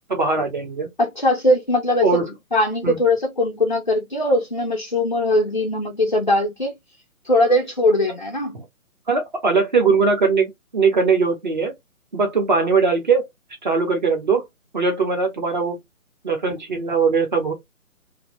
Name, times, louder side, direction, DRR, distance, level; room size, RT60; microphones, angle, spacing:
voice 1, 0.1-0.9 2.0-2.3 2.8-3.0 8.5-8.6 9.1-11.7 12.1-13.2 13.6-14.4 14.7-15.8 16.2-17.5, right 4 dB, 35° right, 0.8 m, -20 dB
voice 2, 1.0-6.7 7.2-8.6, left 1 dB, 35° left, 0.4 m, -20 dB
2.6 x 2.2 x 2.9 m
hypercardioid pair, 165°, 43 cm